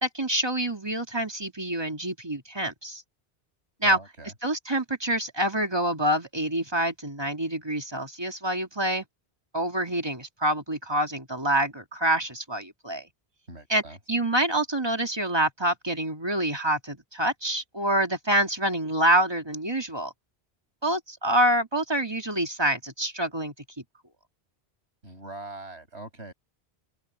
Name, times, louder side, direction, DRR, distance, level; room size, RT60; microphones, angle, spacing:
voice 1, 0.0-3.0 3.8-4.0 4.4-9.1 9.5-13.0 13.7-13.8 14.1-20.1 20.8-23.5, right 1 dB, 25° right, 2.2 m, -26 dB
voice 2, 3.8-4.3 13.5-14.0 25.0-26.3, right 2 dB, 90° right, 7.8 m, -42 dB
open air
omnidirectional pair, 1.1 m